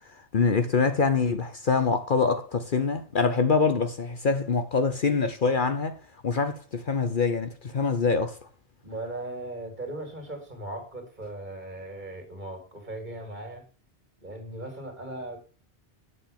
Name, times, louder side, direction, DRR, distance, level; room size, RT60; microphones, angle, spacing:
voice 1, 0.3-8.4, left 4 dB, 50° left, 1.0 m, -25 dB
voice 2, 8.8-13.6 14.2-15.4, right 1 dB, 40° right, 3.3 m, -38 dB
8.4 x 7.4 x 5.2 m
omnidirectional pair, 1.2 m